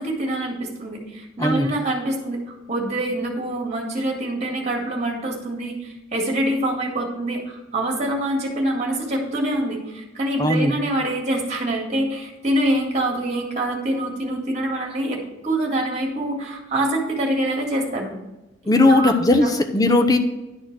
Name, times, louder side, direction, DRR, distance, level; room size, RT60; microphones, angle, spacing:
voice 1, 0.0-18.1 18.9-19.2 19.4-19.5, right 1 dB, 35° right, 0 dB, 2.1 m, -25 dB
voice 2, 10.4-10.7 18.7-20.2, left 2 dB, 20° left, 7 dB, 0.7 m, -17 dB
11.0 x 4.4 x 6.1 m, 1.0 s
head